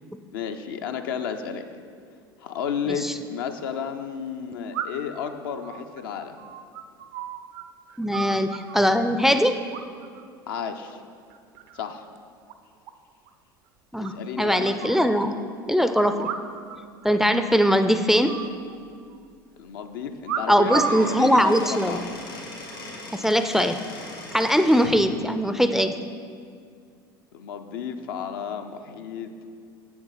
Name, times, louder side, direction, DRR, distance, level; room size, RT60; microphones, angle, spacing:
voice 1, 0.3-1.6 2.4-6.4 10.5-11.0 11.7-12.0 14.1-14.7 19.6-22.1 27.3-29.5, left 7 dB, 70° left, 6 dB, 0.5 m, -32 dB
sound 1, 2.9-3.0 4.7-5.2 5.6-7.6 7.9-8.9 9.7-10.2 10.5-10.9 11.3-11.9 12.1-12.2 12.5-12.6 12.9-13.0 13.3-13.4 14.0-15.1 16.1-16.8 17.0-17.1 17.4-17.8 18.2-19.2 20.2-21.1 21.9-22.2, right 7 dB, 65° right, 0.5 m, -33 dB
voice 2, 8.0-9.6 13.9-15.4 15.6-16.3 17.0-18.4 20.5-22.0 23.1-23.8 24.3-26.0, equal, 5° right, 8 dB, 0.4 m, -21 dB
Squeak / Wood, 20.6-25.0, left 2 dB, 85° left, 1.9 m, -39 dB
7.7 x 7.0 x 3.9 m, 2.2 s
hypercardioid pair, 75°, 12 cm